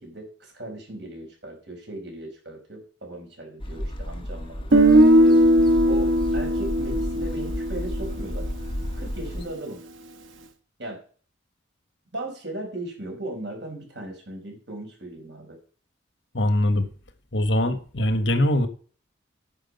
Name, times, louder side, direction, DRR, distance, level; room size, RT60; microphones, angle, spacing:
voice 1, 0.0-5.4 5.9-8.5 8.9-9.8 10.8-11.0 12.1-15.6, right 1 dB, 65° right, 5.0 m, -37 dB
sound 1, 3.6-9.4, equal, 25° left, 1.5 m, -32 dB
Guitar, 4.7-8.7, right 1 dB, 85° right, 1.2 m, -19 dB
voice 2, 16.3-16.9 17.3-18.7, left 1 dB, 70° left, 1.5 m, -22 dB
10.0 x 7.7 x 5.5 m
head